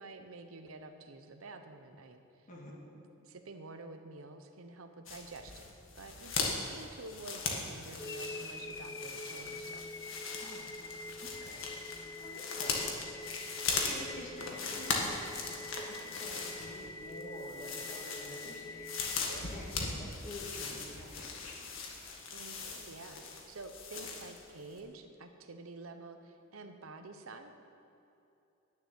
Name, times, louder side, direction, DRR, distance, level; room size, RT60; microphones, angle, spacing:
voice 1, 0.0-2.5 2.9-5.7 5.9-9.9 22.3-27.5, right 2 dB, 85° right, 7 dB, 0.8 m, -49 dB
sound 1, 5.1-24.5 24.8-24.9, left 4 dB, 70° left, 1.7 m, -39 dB
sound 2, 8.0-20.0, left 2 dB, 15° left, 0.3 m, -45 dB
voice 2, 10.4-10.7 11.2-11.7 12.2-12.9 13.8-15.3 15.7-21.8, left 1 dB, 40° left, -3 dB, 2.0 m, -48 dB
11.0 x 6.9 x 9.3 m, 2.8 s
head